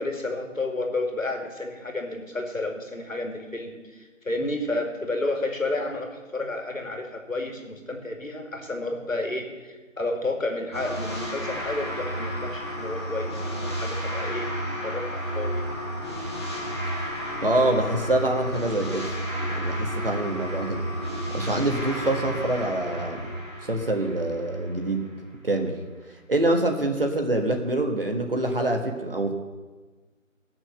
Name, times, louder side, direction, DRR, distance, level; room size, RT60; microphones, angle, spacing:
voice 1, 0.0-14.5 14.8-15.6, left 2 dB, 75° left, 3 dB, 2.5 m, -31 dB
sound 1, 10.7-25.1, equal, 20° left, 1.3 m, -32 dB
voice 2, 17.4-19.1 19.5-20.8 21.3-23.2 23.6-25.0 25.4-25.8 26.3-29.3, right 1 dB, 45° right, 4 dB, 1.5 m, -25 dB
17.5 x 6.3 x 6.5 m, 1.3 s
figure-of-eight pair, 170°, 40 cm